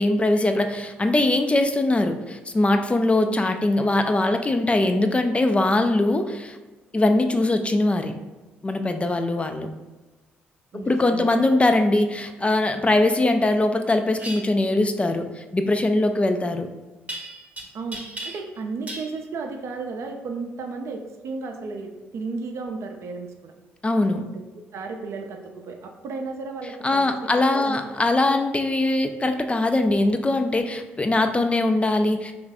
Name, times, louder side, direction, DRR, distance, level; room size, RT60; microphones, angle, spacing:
voice 1, 0.0-6.6 6.9-8.1 8.6-9.7 10.7-16.7 23.8-24.2 26.8-32.3, left 2 dB, 20° left, 7 dB, 0.3 m, -21 dB
voice 2, 10.7-11.4 17.7-23.5 24.7-27.8, right 4 dB, 55° right, 4 dB, 0.4 m, -34 dB
sound 1, 14.2-14.4 17.1-17.6 17.9-18.6 18.9-19.1, right 2 dB, 25° right, 0.8 m, -35 dB
3.0 x 2.4 x 3.6 m, 1.2 s
hypercardioid pair, 50°, 6 cm